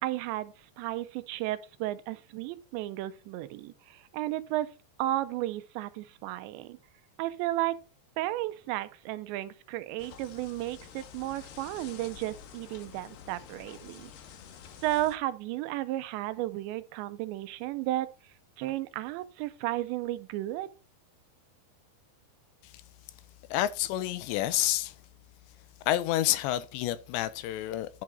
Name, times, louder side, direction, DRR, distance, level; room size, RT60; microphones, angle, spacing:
voice 1, 0.0-4.7 5.0-6.8 7.2-7.8 8.2-14.1 14.8-18.1 18.6-20.7, right 15 dB, 85° right, 2.9 m, -33 dB
sound 1, 10.0-15.2, left 8 dB, 70° left, 2.3 m, -49 dB
voice 2, 23.5-25.0 25.9-28.0, left 14 dB, 85° left, 2.9 m, -29 dB
11.0 x 4.9 x 4.0 m
omnidirectional pair, 5.0 m